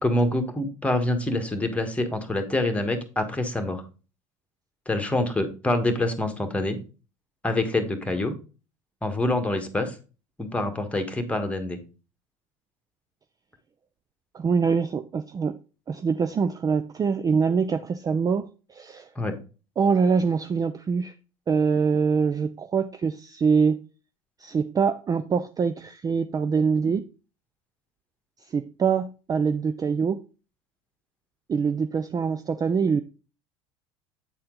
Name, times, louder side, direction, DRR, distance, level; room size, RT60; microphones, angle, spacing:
voice 1, 0.0-3.8 4.9-6.8 7.4-8.3 9.0-9.9 10.4-11.8 19.1-19.3, left 1 dB, 10° left, 1.5 m, -26 dB
voice 2, 14.3-15.6 15.9-19.1 19.8-21.1 21.5-23.8 24.4-27.1 28.5-30.2 31.5-33.0, right 5 dB, 20° right, 0.4 m, -24 dB
8.5 x 4.3 x 3.8 m
hypercardioid pair, 80°, 17 cm